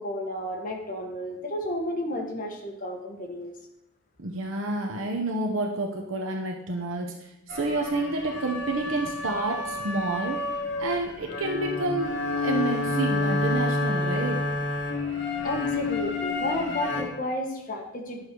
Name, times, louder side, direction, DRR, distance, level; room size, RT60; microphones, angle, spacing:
voice 1, 0.0-3.5 15.4-18.2, left 1 dB, 40° left, 1 dB, 1.6 m, -32 dB
voice 2, 4.2-10.4 10.8-14.4, right 2 dB, 90° right, 1 dB, 1.0 m, -29 dB
sound 1, 7.5-17.0, left 3 dB, 60° left, 1.9 m, -29 dB
10.5 x 6.6 x 4.6 m, 0.86 s
head